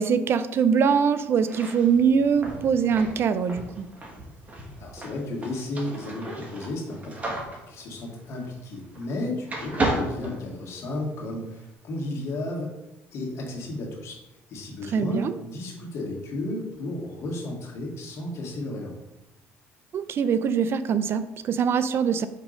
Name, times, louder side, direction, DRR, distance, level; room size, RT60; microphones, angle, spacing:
voice 1, 0.0-3.9 14.9-15.3 19.9-22.3, right 6 dB, 50° right, 12 dB, 0.4 m, -23 dB
sound 1, 1.4-9.2 9.5-11.1, right 2 dB, 30° right, 1.5 m, -34 dB
voice 2, 4.8-12.7 13.1-14.2 14.5-18.9, left 1 dB, 60° left, -1 dB, 1.9 m, -33 dB
5.4 x 3.6 x 5.0 m, 0.94 s
cardioid pair, 95°, 5 cm